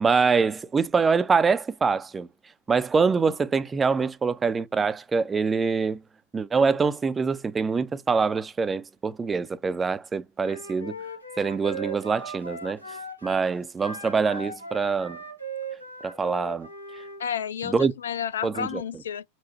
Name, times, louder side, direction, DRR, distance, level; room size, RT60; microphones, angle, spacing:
voice 1, 0.0-2.3 2.7-6.0 6.3-11.0 11.4-12.8 13.2-15.2 16.0-16.7 17.6-17.9 18.4-18.8, right 5 dB, 15° right, 0.3 m, -24 dB
Wind instrument woodwind instrument, 10.4-13.4 13.8-17.2, right 1 dB, 90° left, 0.9 m, -38 dB
voice 2, 17.2-19.2, left 8 dB, 65° left, 0.4 m, -31 dB
4.4 x 2.0 x 3.9 m
figure-of-eight pair, 90°, 0 cm